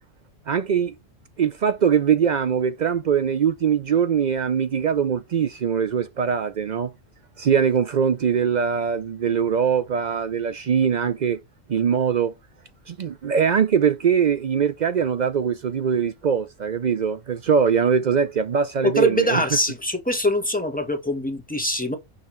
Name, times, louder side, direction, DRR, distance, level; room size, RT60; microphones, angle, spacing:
voice 1, 0.5-0.9 1.4-6.9 7.4-11.4 11.7-12.3 12.9-19.4, right 7 dB, 60° right, 0.5 m, -22 dB
voice 2, 18.8-22.0, equal, 10° left, 1.0 m, -23 dB
6.3 x 5.4 x 3.1 m
omnidirectional pair, 1.2 m